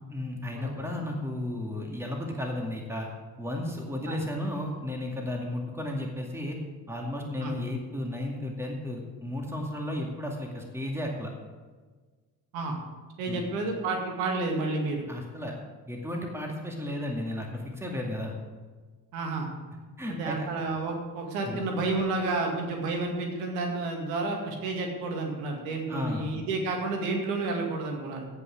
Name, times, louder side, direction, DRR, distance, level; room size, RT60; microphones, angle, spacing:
voice 1, 0.1-3.1 3.4-6.6 6.9-11.3 13.3-13.5 15.1-15.5 15.9-18.3 20.0-20.4 21.5-21.6 25.9-26.3, left 1 dB, 5° right, 1 dB, 2.3 m, -34 dB
voice 2, 13.2-15.1 19.1-19.5 20.1-28.3, right 3 dB, 70° right, 2 dB, 2.3 m, -30 dB
16.5 x 5.8 x 6.1 m, 1.4 s
figure-of-eight pair, 50°, 47 cm